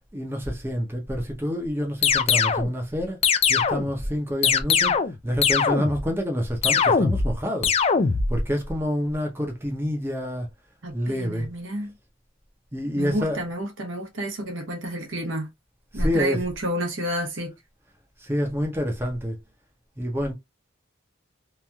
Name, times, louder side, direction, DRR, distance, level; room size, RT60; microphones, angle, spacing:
voice 1, 0.1-3.2 3.5-7.7 8.3-10.5 10.9-11.5 12.7-13.4 15.9-16.4 18.2-19.4 20.0-20.3, equal, 10° right, 0.7 m, -27 dB
sound 1, 2.0-2.7 3.2-3.9 4.4-5.2 5.4-6.1 6.6-7.3 7.6-8.3, left 6 dB, 30° left, 0.3 m, -21 dB
voice 2, 10.8-11.9 13.0-15.5 15.9-17.5, equal, 70° right, 1.0 m, -30 dB
3.0 x 2.6 x 2.3 m
head